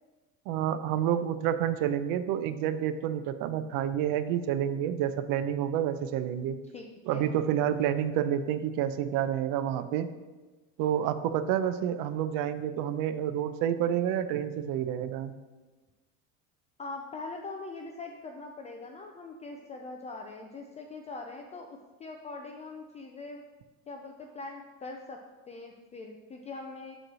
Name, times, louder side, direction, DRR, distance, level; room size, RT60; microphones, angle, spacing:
voice 1, 0.5-6.6 7.1-10.1 10.8-15.3, right 10 dB, 60° right, 11 dB, 0.6 m, -29 dB
voice 2, 6.7-7.3 16.8-21.7 22.0-23.4 23.9-25.2 25.5-27.0, left 3 dB, 20° left, 2 dB, 0.3 m, -42 dB
7.7 x 3.1 x 6.0 m, 1.2 s
supercardioid pair, 135°, 38 cm